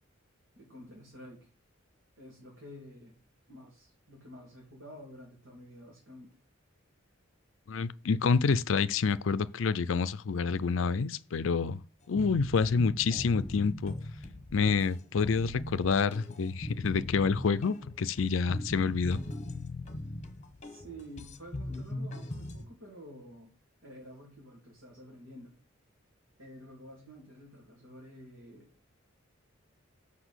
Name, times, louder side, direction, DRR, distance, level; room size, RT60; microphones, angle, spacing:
voice 1, 0.6-1.5 2.2-3.2 3.5-6.3 20.6-23.5 23.8-25.5 26.4-28.7, equal, 75° right, 3.2 m, -50 dB
voice 2, 7.7-11.8 12.1-13.9 14.5-19.2, left 5 dB, 70° left, 0.5 m, -28 dB
sound 1, 12.2-22.6, left 1 dB, 35° left, 1.2 m, -40 dB
6.1 x 5.7 x 6.3 m
head